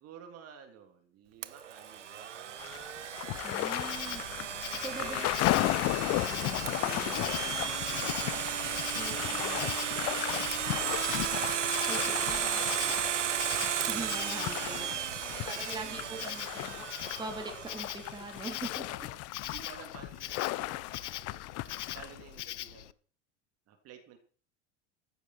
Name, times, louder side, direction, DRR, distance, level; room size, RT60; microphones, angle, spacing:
voice 1, 0.0-3.0 4.9-5.8 6.8-8.3 8.6-11.1 11.8-13.2 14.9-15.5 15.7-16.5 18.8-22.9 23.7-24.2, right 7 dB, 45° right, 5 dB, 3.1 m, -52 dB
Domestic sounds home sounds, 1.4-18.2, right 9 dB, 85° right, 0.9 m, -34 dB
sound 1, 2.6-22.4, left 19 dB, 45° left, 0.8 m, -35 dB
voice 2, 3.4-4.2 4.8-5.7 6.2-7.2 9.0-9.6 11.9-12.7 13.9-14.9 15.4-16.9 17.2-18.8, right 2 dB, 10° right, 3 dB, 3.6 m, -43 dB
Insect, 3.7-22.9, left 13 dB, 75° left, 0.7 m, -43 dB
15.0 x 13.0 x 4.5 m, 0.43 s
figure-of-eight pair, 80°, 35 cm